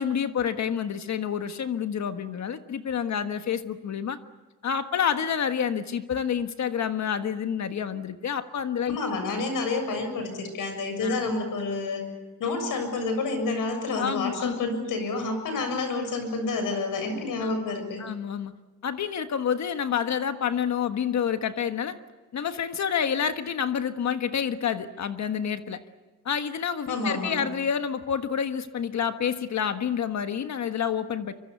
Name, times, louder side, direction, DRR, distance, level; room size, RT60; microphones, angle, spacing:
voice 1, 0.0-4.2 4.6-9.0 11.0-11.2 13.9-14.7 17.4-17.5 18.0-18.5 18.8-22.0 22.3-25.8 26.2-31.3, left 8 dB, 55° left, 9 dB, 1.5 m, -28 dB
voice 2, 8.8-12.1 12.4-18.0 26.9-27.4, left 3 dB, 70° left, 8 dB, 6.9 m, -29 dB
24.5 x 24.0 x 8.3 m, 1.2 s
cardioid pair, 100°, 33 cm